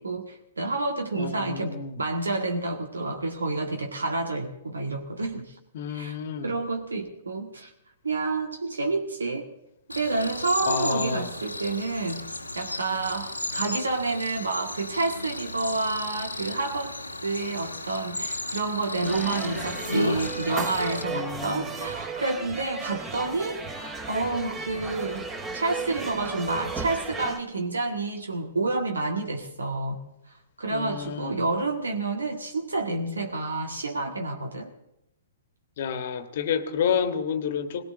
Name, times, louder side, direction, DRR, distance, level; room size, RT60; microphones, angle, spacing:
voice 1, 0.0-5.6 5.9-6.2 6.4-7.7 8.0-9.5 9.9-12.2 12.5-17.0 17.2-25.3 25.5-30.0 30.6-34.7, right 3 dB, 70° right, 4 dB, 1.8 m, -29 dB
voice 2, 1.2-2.0 5.7-6.5 10.7-11.3 21.1-21.7 30.7-31.4 35.8-37.8, left 7 dB, 50° left, 10 dB, 1.5 m, -29 dB
Cricket, 9.9-21.0, left 2 dB, 85° left, 1.4 m, -34 dB
sound 1, 19.0-27.4, right 4 dB, 15° right, 2.3 m, -35 dB
19.5 x 18.5 x 3.8 m, 0.81 s
figure-of-eight pair, 115°, 0 cm